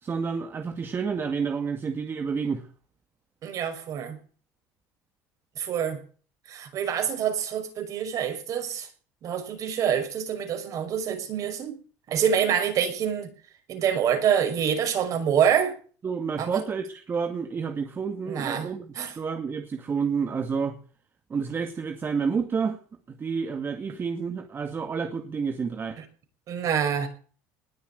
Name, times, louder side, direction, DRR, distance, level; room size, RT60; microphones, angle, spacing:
voice 1, 0.0-2.7 16.0-20.8 21.3-22.8 23.1-26.0, right 5 dB, 30° right, 2.1 m, -29 dB
voice 2, 3.4-4.2 5.6-6.0 6.5-8.9 9.2-11.8 12.1-13.3 13.7-15.7 16.4-16.6 18.3-18.7 19.0-19.1 26.5-27.1, right 8 dB, 50° right, 5.8 m, -26 dB
20.0 x 7.2 x 9.1 m
supercardioid pair, 95°, 7 cm